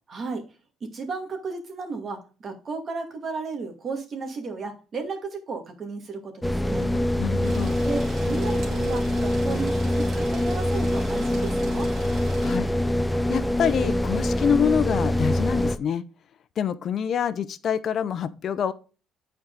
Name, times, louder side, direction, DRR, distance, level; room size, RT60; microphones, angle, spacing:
voice 1, 0.1-0.4 0.8-6.9 7.8-8.0 8.3-11.9, right 4 dB, 45° right, 2.1 m, -33 dB
sound 1, 6.4-15.8, left 1 dB, 5° left, 0.7 m, -24 dB
voice 2, 7.2-7.8 12.4-12.7 13.3-16.0 16.6-18.7, left 8 dB, 55° left, 0.7 m, -26 dB
sound 2, 7.4-12.6, right 2 dB, 60° right, 2.5 m, -41 dB
8.8 x 4.7 x 3.9 m
cardioid pair, 90°, 0 cm